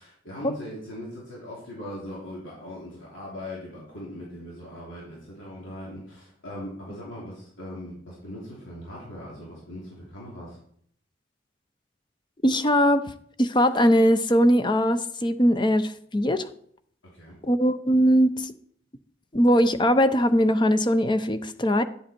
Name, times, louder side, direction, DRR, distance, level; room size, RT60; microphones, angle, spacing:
voice 1, 0.0-10.6 17.1-17.4, left 1 dB, 80° left, -5 dB, 3.3 m, -40 dB
voice 2, 12.4-13.1 13.4-16.5 17.4-18.5 19.3-21.8, equal, 25° left, 11 dB, 0.6 m, -20 dB
11.0 x 7.9 x 4.4 m, 0.65 s
head